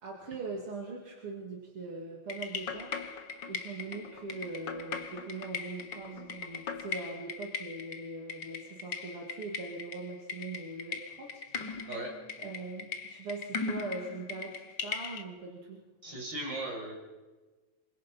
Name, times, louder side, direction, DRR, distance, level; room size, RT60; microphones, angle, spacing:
voice 1, 0.0-2.9 3.5-11.9 12.4-15.8, right 3 dB, 80° right, -1 dB, 3.8 m, -41 dB
sound 1, 2.3-15.2, left 5 dB, 55° left, 2.1 m, -40 dB
voice 2, 16.0-16.9, right 1 dB, 55° right, 0 dB, 6.9 m, -37 dB
27.0 x 25.0 x 5.6 m, 1.3 s
omnidirectional pair, 2.4 m